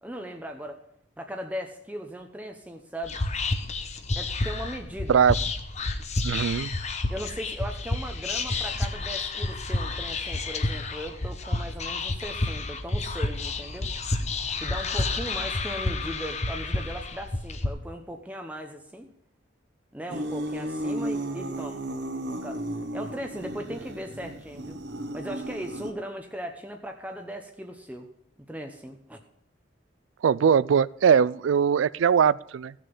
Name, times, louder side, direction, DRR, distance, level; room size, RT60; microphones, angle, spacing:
voice 1, 0.0-0.8 1.2-3.2 4.2-5.2 7.1-13.9 14.6-19.1 19.9-21.9 22.4-22.6 22.9-24.8 25.1-28.1 28.5-29.2, equal, 10° right, 4 dB, 0.8 m, -38 dB
Whispering, 3.0-17.7, left 2 dB, 35° left, 1.0 m, -30 dB
voice 2, 6.2-6.7 30.2-32.7, right 7 dB, 85° right, 22 dB, 0.4 m, -21 dB
sound 1, 20.1-25.9, right 1 dB, 60° right, 1.3 m, -34 dB
16.0 x 6.8 x 5.4 m, 0.77 s
head